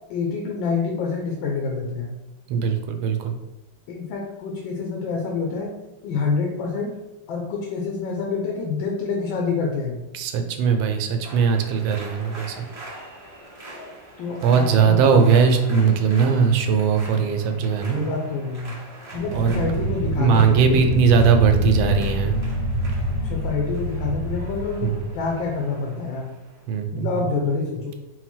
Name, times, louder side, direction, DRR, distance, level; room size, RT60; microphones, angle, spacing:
voice 1, 0.1-2.1 3.9-5.7 6.0-7.0 7.3-10.0 14.2-15.2 17.5-18.8 19.1-20.8 23.2-24.9 25.1-26.3 26.9-27.9, left 4 dB, 80° left, -1 dB, 1.4 m, -27 dB
voice 2, 2.5-3.3 10.1-12.7 14.4-18.1 19.3-19.7 20.2-22.4 24.8-25.1 26.7-27.1, right 6 dB, 85° right, 5 dB, 1.3 m, -19 dB
sound 1, 11.2-26.7, right 1 dB, 25° right, 0.6 m, -43 dB
sound 2, 19.1-25.6, right 1 dB, 60° right, 1.3 m, -26 dB
4.2 x 2.1 x 4.3 m, 0.98 s
omnidirectional pair, 2.1 m